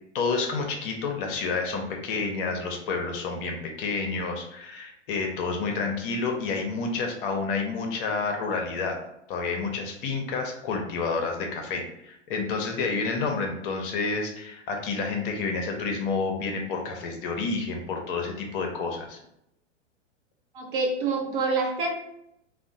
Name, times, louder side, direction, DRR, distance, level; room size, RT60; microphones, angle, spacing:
voice 1, 0.1-9.0 9.3-19.2, left 4 dB, 45° left, 2 dB, 0.6 m, -29 dB
voice 2, 20.5-21.9, right 3 dB, 45° right, 2 dB, 0.5 m, -26 dB
2.7 x 2.0 x 2.6 m, 0.80 s
hypercardioid pair, 110°, 37 cm